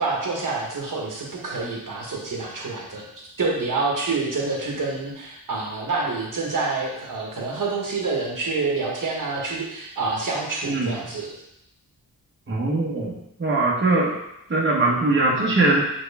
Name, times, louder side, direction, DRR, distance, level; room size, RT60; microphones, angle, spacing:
voice 1, 0.0-3.1 3.4-11.4, right 3 dB, 60° right, -2 dB, 1.3 m, -27 dB
voice 2, 12.5-13.1 13.4-14.1 14.5-15.8, right 2 dB, 30° right, -4 dB, 1.1 m, -21 dB
6.1 x 4.6 x 3.4 m, 0.81 s
wide cardioid pair, 160°, 35 cm